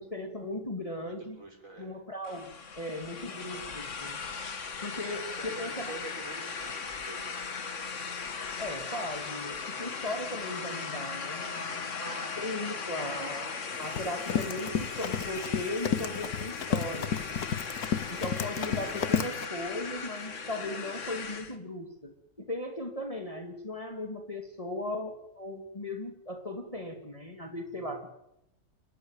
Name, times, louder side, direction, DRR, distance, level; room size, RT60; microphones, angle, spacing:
voice 1, 0.0-1.4 1.8-4.2 4.8-6.0 8.6-13.5 13.8-17.4 18.1-28.2, left 1 dB, 20° left, 4 dB, 2.4 m, -37 dB
voice 2, 1.4-1.9 4.9-7.5, right 2 dB, 55° right, -1 dB, 7.4 m, -46 dB
sound 1, 2.2-21.6, left 5 dB, 55° left, 1.9 m, -38 dB
Run, 13.7-19.5, left 8 dB, 80° left, 1.7 m, -32 dB
28.5 x 12.0 x 9.0 m, 0.83 s
omnidirectional pair, 1.6 m